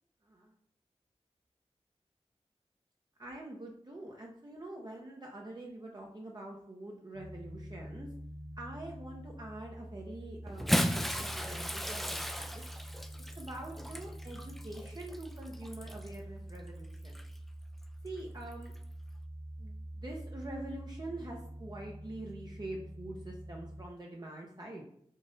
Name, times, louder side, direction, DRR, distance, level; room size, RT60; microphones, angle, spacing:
voice 1, 0.2-0.6 3.2-8.1 8.6-12.6 13.4-17.2 18.0-18.7 19.6-24.9, right 1 dB, 35° right, -1 dB, 0.7 m, -45 dB
sound 1, 7.1-23.9, right 1 dB, 70° left, 1.2 m, -46 dB
Bathtub (filling or washing) / Splash splatter, 10.5-16.1 17.0-17.2 18.7-18.8, equal, ahead, 0.3 m, -35 dB
3.8 x 2.5 x 3.8 m, 0.71 s
cardioid pair, 50°, 12 cm